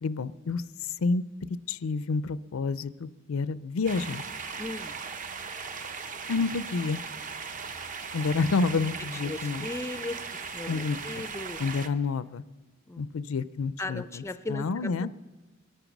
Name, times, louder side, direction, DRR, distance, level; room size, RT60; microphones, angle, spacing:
voice 1, 0.0-1.2 1.7-4.2 6.3-7.0 8.1-9.7 10.7-11.0 11.6-12.4 13.0-14.2 14.5-15.1, left 4 dB, 90° left, 16 dB, 0.5 m, -29 dB
sound 1, 3.8-11.9, right 5 dB, 40° right, 0.7 m, -38 dB
voice 2, 4.6-5.0 9.2-10.2 10.5-11.6 12.9-13.0 13.8-14.9, left 2 dB, 15° left, 12 dB, 0.4 m, -37 dB
22.0 x 9.1 x 6.0 m, 1.2 s
head